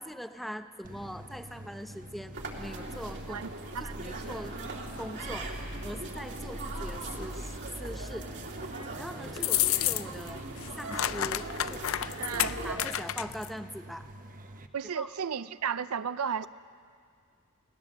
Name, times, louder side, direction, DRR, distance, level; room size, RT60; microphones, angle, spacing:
voice 1, 0.0-3.5 3.8-4.6 5.0-8.3 8.7-10.4 10.8-11.8 12.4-14.1 14.9-15.1, equal, ahead, 8 dB, 0.7 m, -42 dB
sound 1, 0.8-14.7, right 1 dB, 40° right, 1.1 m, -47 dB
sound 2, 2.3-12.8, right 2 dB, 55° right, 2.8 m, -39 dB
voice 2, 3.3-3.9 4.2-4.3 4.7-4.8 12.2-12.6 14.7-16.5, right 7 dB, 85° right, 14 dB, 0.6 m, -34 dB
sound 3, 9.4-10.3 10.6-13.5, left 13 dB, 65° left, 0.5 m, -30 dB
29.5 x 18.5 x 7.5 m, 2.2 s
head